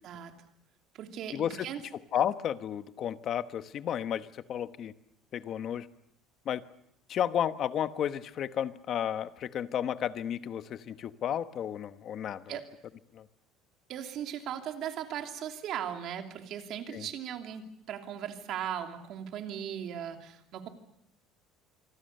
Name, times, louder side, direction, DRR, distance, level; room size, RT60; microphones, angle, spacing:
voice 1, 0.0-0.3 0.9-1.8 12.5-12.6 13.9-20.7, right 9 dB, 45° right, 5 dB, 2.9 m, -38 dB
voice 2, 1.3-1.7 2.1-4.9 5.3-5.9 6.4-6.6 7.1-12.6 13.1-13.3 16.9-17.1, left 9 dB, 35° left, 12 dB, 1.0 m, -32 dB
26.0 x 25.0 x 6.6 m, 0.75 s
cardioid pair, 170°, 0 cm